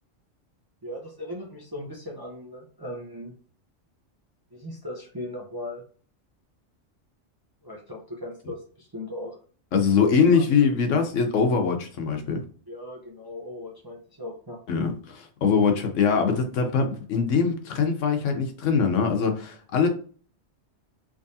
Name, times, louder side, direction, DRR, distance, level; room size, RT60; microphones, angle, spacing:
voice 1, 0.8-3.3 4.5-5.8 7.6-9.4 10.0-10.4 12.7-14.6, left 1 dB, 25° right, 0.5 m, -38 dB
voice 2, 9.7-12.4 14.7-19.9, left 5 dB, 75° left, 1.1 m, -22 dB
3.6 x 3.1 x 2.7 m
omnidirectional pair, 1.3 m